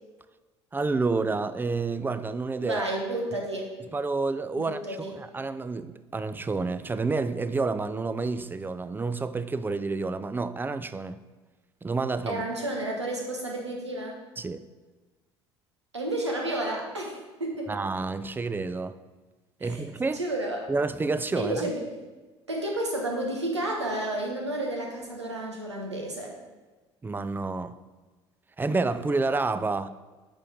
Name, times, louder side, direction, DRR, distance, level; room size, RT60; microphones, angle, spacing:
voice 1, 0.7-2.8 3.9-11.2 11.8-12.4 14.4-14.6 17.7-19.0 19.6-20.2 20.7-21.7 27.0-27.8 28.6-29.9, right 3 dB, 15° right, 0.4 m, -29 dB
voice 2, 2.6-3.7 4.6-5.1 12.2-14.2 15.9-17.8 19.6-19.8 20.1-20.6 21.3-21.8 22.5-26.3, right 1 dB, 90° right, 1.2 m, -31 dB
8.8 x 5.6 x 3.5 m
figure-of-eight pair, 60°, 14 cm